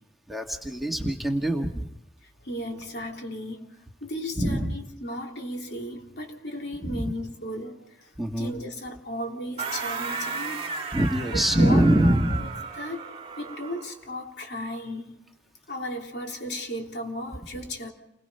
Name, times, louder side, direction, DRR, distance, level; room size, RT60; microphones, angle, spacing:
voice 1, 0.3-1.9 4.4-4.7 6.8-7.1 8.2-8.5 10.9-12.5, right 1 dB, ahead, 1 dB, 1.8 m, -23 dB
voice 2, 2.2-10.9 11.3-12.5 12.8-15.2 15.7-17.9, equal, 65° left, 1 dB, 3.3 m, -36 dB
sound 1, 9.6-14.0, right 5 dB, 30° right, 1.8 m, -34 dB
29.5 x 21.5 x 5.6 m, 0.84 s
head